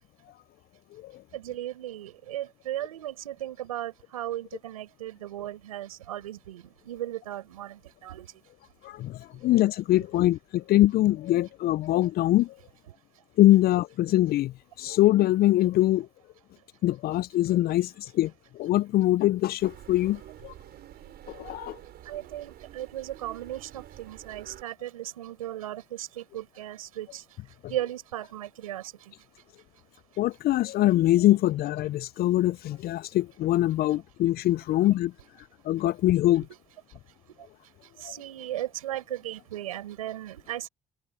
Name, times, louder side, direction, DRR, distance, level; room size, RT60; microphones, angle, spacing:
voice 1, 1.3-8.3 9.5-9.6 22.1-27.2 27.7-29.1 38.0-40.7, right 13 dB, 90° right, 5.5 m, -36 dB
voice 2, 8.8-12.5 13.4-16.1 16.8-18.3 18.6-20.5 21.3-21.8 30.2-35.1 35.7-36.5 38.0-38.1, left 15 dB, 60° left, 0.6 m, -23 dB
sound 1, 19.6-24.6, right 12 dB, 65° right, 6.3 m, -48 dB
hypercardioid pair, 50°, 18 cm